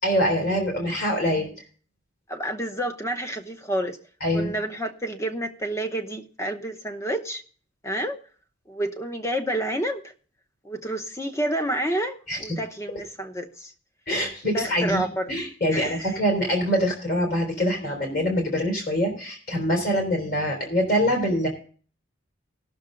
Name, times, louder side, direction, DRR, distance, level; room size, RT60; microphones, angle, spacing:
voice 1, 0.0-1.5 4.2-4.5 12.3-12.6 14.1-21.5, equal, 45° left, 1 dB, 3.5 m, -24 dB
voice 2, 2.3-4.0 4.3-7.4 7.8-8.2 8.7-10.0 10.6-13.7 14.5-15.3 15.7-16.1, right 1 dB, 15° left, 7 dB, 0.8 m, -29 dB
18.0 x 6.6 x 3.8 m, 0.43 s
head